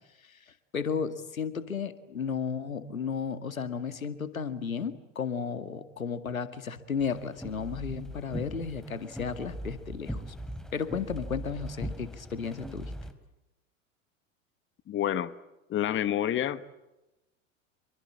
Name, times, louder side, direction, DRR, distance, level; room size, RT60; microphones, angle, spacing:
voice 1, 0.3-10.4 10.7-12.9, left 6 dB, 90° left, 12 dB, 2.0 m, -34 dB
sound 1, 7.0-13.1, equal, ahead, 3.3 m, -40 dB
voice 2, 14.9-15.3 15.7-16.6, left 11 dB, 30° left, 15 dB, 1.3 m, -28 dB
27.0 x 24.0 x 8.6 m, 0.97 s
hypercardioid pair, 90°, 40 cm